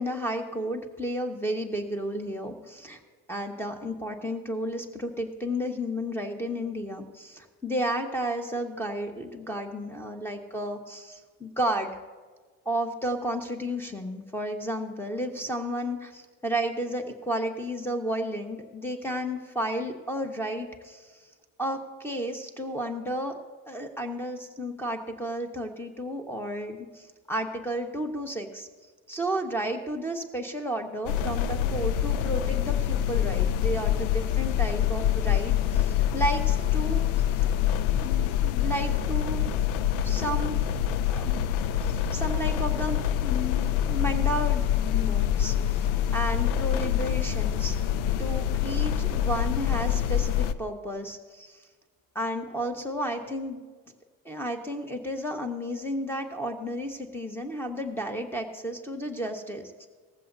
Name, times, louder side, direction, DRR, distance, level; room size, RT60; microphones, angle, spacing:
voice 1, 0.0-3.0 3.3-11.9 12.6-21.2 21.6-23.4 23.7-28.7 29.1-37.0 38.0-39.5 40.0-40.6 41.1-41.5 41.9-45.8 46.1-47.8 48.2-51.6 52.1-53.6 54.2-59.9, equal, 5° left, 4 dB, 1.5 m, -32 dB
sound 1, 31.1-50.5, left 10 dB, 70° left, 0.7 m, -26 dB
18.0 x 15.0 x 2.8 m, 1.4 s
hypercardioid pair, 65°, 41 cm